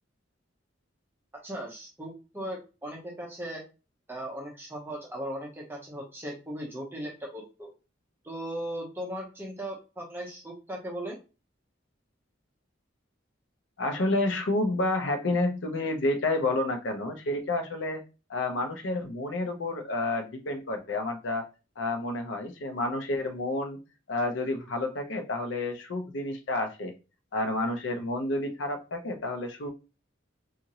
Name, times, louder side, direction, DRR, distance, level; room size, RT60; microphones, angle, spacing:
voice 1, 1.3-3.6 4.1-7.7 8.2-11.2, right 1 dB, 10° right, -2 dB, 0.7 m, -38 dB
voice 2, 13.8-18.0 18.3-21.5 21.8-23.8 24.1-26.9 27.3-29.7, left 2 dB, 70° left, 5 dB, 0.6 m, -30 dB
2.9 x 2.4 x 2.7 m, 0.31 s
head